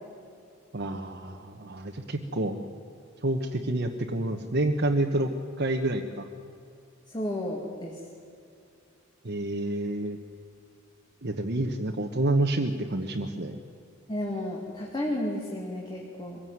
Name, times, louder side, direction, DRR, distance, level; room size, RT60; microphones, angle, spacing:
voice 1, 0.7-2.6 3.2-5.3 5.6-6.3 9.2-10.2 11.2-13.6, right 1 dB, 55° right, 2 dB, 1.2 m, -28 dB
voice 2, 7.1-8.0 14.1-16.4, left 1 dB, 20° left, -2 dB, 2.5 m, -32 dB
23.0 x 16.5 x 9.5 m, 2.4 s
head